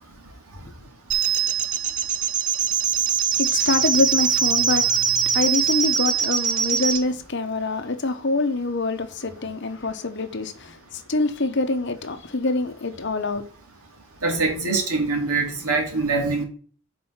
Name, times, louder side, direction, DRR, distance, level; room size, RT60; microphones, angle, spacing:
sound 1, 1.1-7.0, right 7 dB, 35° right, 0.6 m, -22 dB
voice 1, 3.4-13.4, left 2 dB, 50° left, 0.8 m, -25 dB
voice 2, 14.2-16.4, right 3 dB, 85° right, 2.4 m, -23 dB
6.2 x 4.3 x 5.6 m
head